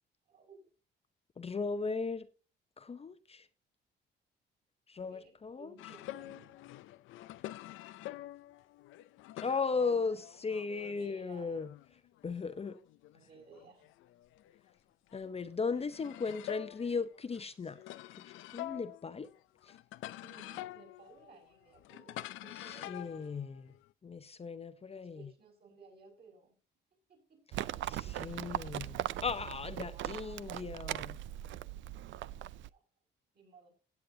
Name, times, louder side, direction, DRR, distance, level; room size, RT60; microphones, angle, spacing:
voice 1, 0.3-0.7 4.9-6.5 9.6-11.6 13.1-13.9 20.2-23.1 24.8-26.6 27.1-27.6 29.8-30.7 32.7-32.8 33.3-33.7, right 4 dB, 55° right, 6.1 m, -58 dB
voice 2, 1.4-2.3 2.8-3.5 4.9-5.8 9.4-11.7 12.2-12.8 15.1-17.8 18.1-18.2 18.5-19.3 22.5-23.7 24.0-25.3 28.0-31.2, left 4 dB, 30° left, 0.7 m, -37 dB
sound 1, 5.8-11.1 11.4-14.7 15.1-23.9, left 15 dB, 90° left, 0.5 m, -48 dB
Livestock farm animals working animals, 27.5-32.7, right 14 dB, 75° right, 0.4 m, -39 dB
16.5 x 8.4 x 2.7 m
cardioid pair, 90°, 20 cm